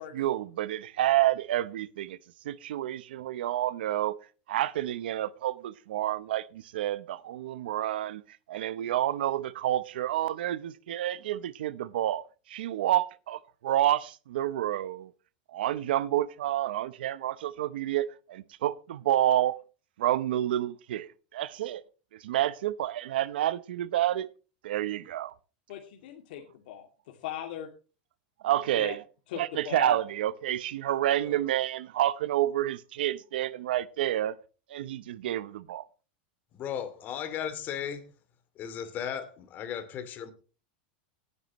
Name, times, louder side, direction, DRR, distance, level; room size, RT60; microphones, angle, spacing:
voice 1, 0.1-2.2 2.4-4.2 4.5-8.2 8.5-12.2 12.5-15.1 15.5-19.6 20.0-21.8 22.2-24.3 24.6-25.3 28.4-29.0 29.4-34.4 34.7-35.8, right 13 dB, 85° right, 0.9 m, -29 dB
voice 2, 25.7-27.7 28.8-29.0 29.3-30.0, left 11 dB, 70° left, 2.5 m, -39 dB
voice 3, 36.5-38.1 38.6-40.3, left 8 dB, 35° left, 2.7 m, -36 dB
18.5 x 9.7 x 3.1 m
supercardioid pair, 140°, 5 cm